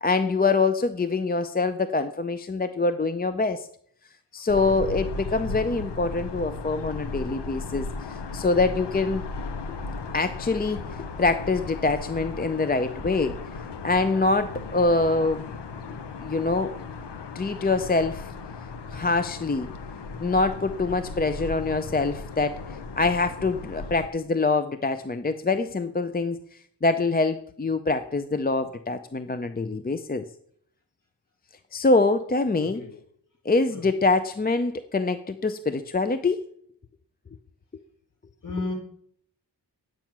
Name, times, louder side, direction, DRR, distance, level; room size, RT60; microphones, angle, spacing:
voice 1, 0.0-3.7 4.3-9.2 10.1-10.9 11.2-13.4 13.8-15.4 15.9-16.8 17.3-18.3 18.9-19.7 20.2-22.6 23.0-26.4 26.8-30.2 31.7-32.8 33.5-36.4, left 3 dB, 20° left, 10 dB, 0.5 m, -25 dB
sound 1, 4.5-24.1, left 4 dB, 75° left, 1.0 m, -36 dB
voice 2, 32.6-32.9 33.7-33.8 38.4-38.7, left 3 dB, 50° left, 1 dB, 4.2 m, -32 dB
10.0 x 9.0 x 5.9 m, 0.65 s
wide cardioid pair, 110°, 42 cm